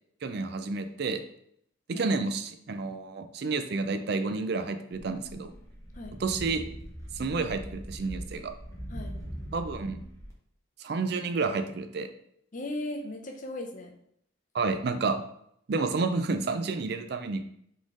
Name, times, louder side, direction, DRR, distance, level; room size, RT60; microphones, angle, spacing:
voice 1, 0.2-1.2 1.9-5.5 6.2-6.6 7.1-8.5 9.5-10.0 10.8-12.1 14.5-15.2 15.7-17.4, right 4 dB, 50° right, 8 dB, 0.4 m, -30 dB
sound 1, 4.9-10.3, equal, 15° left, 0.8 m, -41 dB
voice 2, 12.5-14.0, left 1 dB, 40° left, 2 dB, 0.6 m, -37 dB
4.1 x 3.2 x 3.7 m, 0.71 s
head